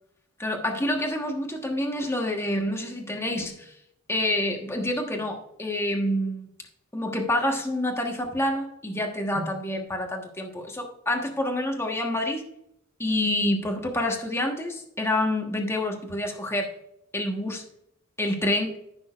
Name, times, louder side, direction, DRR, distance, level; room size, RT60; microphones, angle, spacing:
voice 1, 0.4-3.7 4.1-6.5 6.9-12.4 13.0-16.7 17.1-17.6 18.2-18.8, left 1 dB, 10° left, 2 dB, 1.3 m, -27 dB
14.5 x 6.3 x 2.5 m, 0.77 s
head